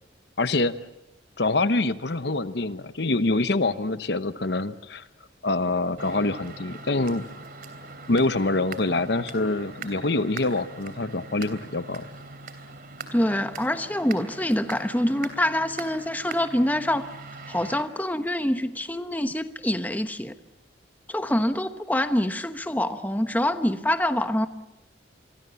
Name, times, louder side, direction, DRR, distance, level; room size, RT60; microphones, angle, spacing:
voice 1, 0.4-0.7 1.4-5.0 5.4-7.2 8.1-12.1, left 2 dB, 60° left, 12 dB, 0.9 m, -25 dB
sound 1, 6.0-17.8, right 4 dB, 50° right, 3.1 m, -42 dB
voice 2, 13.1-17.1 17.5-20.3 21.1-24.5, left 1 dB, 10° left, 8 dB, 1.0 m, -25 dB
27.0 x 23.5 x 7.0 m, 0.93 s
head